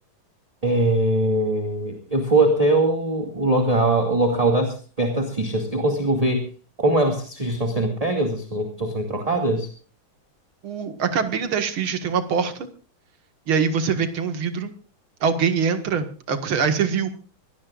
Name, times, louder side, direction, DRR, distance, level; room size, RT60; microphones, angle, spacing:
voice 1, 0.6-6.5 6.8-9.7, right 2 dB, 15° right, 3 dB, 2.3 m, -22 dB
voice 2, 10.6-12.7 13.5-14.7 15.2-17.1, right 6 dB, 75° right, 8 dB, 2.6 m, -23 dB
24.0 x 18.5 x 2.5 m, 0.37 s
omnidirectional pair, 2.3 m